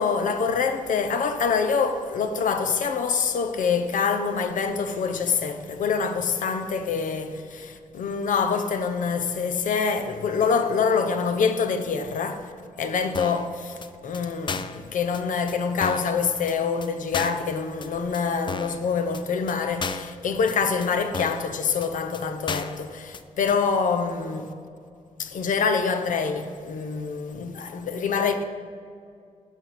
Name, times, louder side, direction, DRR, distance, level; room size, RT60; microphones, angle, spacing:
voice 1, 0.0-12.5 12.8-24.5 25.2-28.4, left 5 dB, 75° left, 0.8 m, -25 dB
sound 1, 13.1-13.5 13.8-13.9 14.1-14.2 14.5-14.8 15.1-15.2 15.5-15.6 15.8-16.1 16.5-16.6 16.8-16.9 17.1-17.5 17.8-17.9 18.1-18.2 18.5-18.8 19.1-19.2 19.5-19.6 19.8-20.1 20.5-20.6 20.8-20.9 21.1-21.5 21.8-21.9 22.1-22.2 22.5-22.8 23.1-23.2 23.5-23.6, left 5 dB, 35° left, 0.4 m, -33 dB
12.0 x 7.1 x 4.3 m
wide cardioid pair, 125°, 14 cm